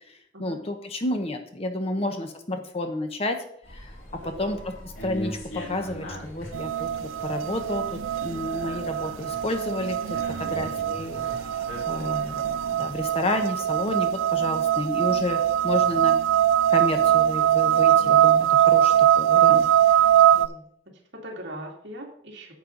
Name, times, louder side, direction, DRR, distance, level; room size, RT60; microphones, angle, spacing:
voice 1, 0.4-3.4 3.7-3.9 4.2-4.6 5.0-6.9 7.2-10.0 10.4-11.2 11.9-16.1 16.7-19.7, left 1 dB, 30° left, 6 dB, 0.9 m, -30 dB
sound 1, 3.6-13.1, equal, 85° left, 3.9 m, -40 dB
voice 2, 4.2-4.5 10.4-10.7 20.2-20.6 21.1-22.5, equal, 65° right, -1 dB, 2.4 m, -41 dB
sound 2, 6.5-20.5, right 11 dB, 85° right, 0.3 m, -22 dB
9.7 x 7.6 x 3.9 m, 0.66 s
head